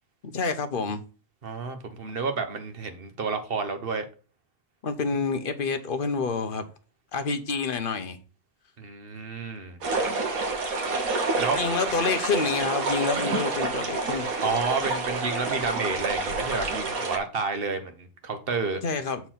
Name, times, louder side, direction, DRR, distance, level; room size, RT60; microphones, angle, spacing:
voice 1, 0.2-1.0 4.8-6.7 7.1-8.2 11.6-14.3 18.8-19.2, left 4 dB, 45° left, 0.9 m, -28 dB
voice 2, 1.4-4.1 8.8-9.8 11.4-11.6 14.4-18.8, right 4 dB, 45° right, 1.3 m, -30 dB
sound 1, 9.8-17.2, right 3 dB, 85° right, 1.7 m, -28 dB
6.8 x 4.5 x 5.7 m
omnidirectional pair, 1.4 m